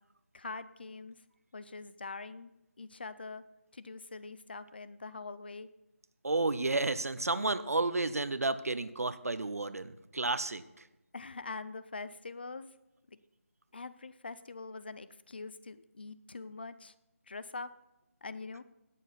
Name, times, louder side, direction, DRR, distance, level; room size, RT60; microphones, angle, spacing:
voice 1, 0.3-1.2 1.5-2.5 2.8-3.4 3.7-5.7 11.1-12.7 13.1-13.2 13.7-16.9 17.3-17.7 18.2-18.6, left 4 dB, 45° left, 15 dB, 0.6 m, -43 dB
voice 2, 6.2-10.6, right 3 dB, 90° right, 13 dB, 0.9 m, -31 dB
17.5 x 7.4 x 4.2 m, 0.94 s
figure-of-eight pair, 175°, 8 cm